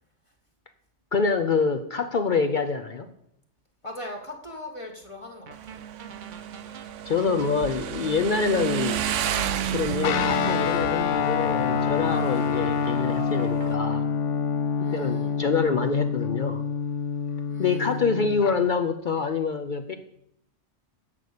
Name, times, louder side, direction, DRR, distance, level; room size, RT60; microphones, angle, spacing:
voice 1, 1.1-3.1 7.0-9.0 9.7-14.0 14.9-16.6 17.6-19.9, left 5 dB, 50° left, 7 dB, 0.7 m, -26 dB
voice 2, 3.8-5.8 14.8-15.4 17.5-18.1, left 1 dB, 25° left, 1 dB, 1.4 m, -40 dB
sound 1, 5.5-14.0, right 6 dB, 50° right, 0.8 m, -46 dB
Motorcycle, 5.5-13.7, right 9 dB, 85° right, 1.0 m, -32 dB
Guitar, 10.0-18.5, left 6 dB, 90° left, 1.0 m, -26 dB
10.5 x 6.8 x 6.6 m, 0.76 s
omnidirectional pair, 1.2 m